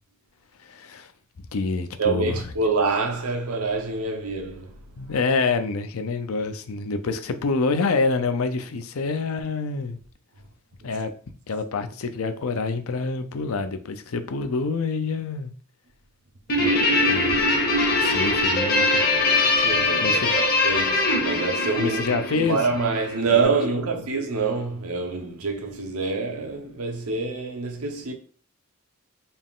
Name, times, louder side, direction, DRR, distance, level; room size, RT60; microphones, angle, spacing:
voice 1, 0.6-1.1 1.5-2.4 5.0-10.0 10.8-11.1 11.5-15.5 16.6-17.4 18.0-19.0 20.0-20.3 21.8-22.6 23.3-23.4, left 4 dB, 80° left, 0.5 m, -27 dB
voice 2, 2.0-5.1 10.8-10.9 17.9-18.2 19.4-28.1, right 4 dB, 90° right, 0.9 m, -26 dB
Guitar, 16.5-23.2, left 2 dB, 45° left, 0.8 m, -22 dB
4.2 x 2.4 x 3.6 m
head